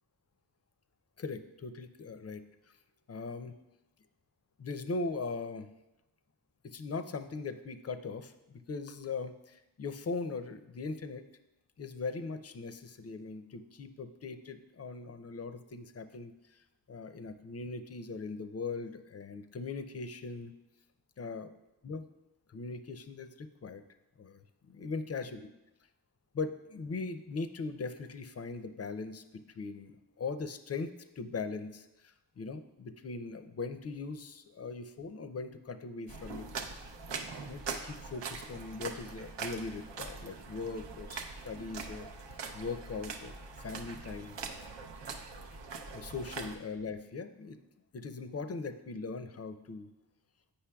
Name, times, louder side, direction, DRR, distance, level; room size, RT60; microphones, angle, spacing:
voice 1, 1.2-2.4 3.1-3.5 4.6-5.7 6.6-11.2 11.8-16.6 16.9-20.5 21.2-21.5 21.8-22.0 22.5-23.8 24.2-25.5 26.3-36.8 37.5-42.1 42.5-43.3 43.6-44.4 45.9-47.6 47.9-49.9, left 4 dB, 40° left, 10 dB, 0.4 m, -40 dB
sound 1, 36.1-46.5, right 4 dB, 85° right, 0.6 m, -42 dB
8.4 x 5.4 x 2.3 m, 0.95 s
wide cardioid pair, 60°, 42 cm